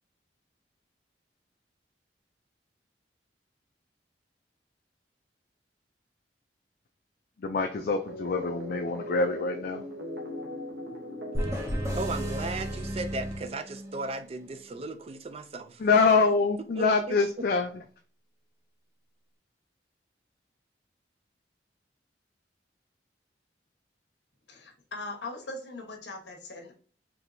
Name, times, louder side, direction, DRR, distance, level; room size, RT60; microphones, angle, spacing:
voice 1, 7.4-9.8 15.8-17.7, left 4 dB, 55° left, 0.4 m, -25 dB
sound 1, 8.1-13.2, equal, 70° right, 0.9 m, -40 dB
sound 2, 11.3-14.1, equal, 20° right, 1.0 m, -33 dB
voice 2, 11.6-15.8 16.8-17.2, right 3 dB, 35° right, 0.4 m, -36 dB
voice 3, 24.5-26.7, left 2 dB, 75° left, 1.1 m, -40 dB
4.4 x 3.1 x 2.6 m
head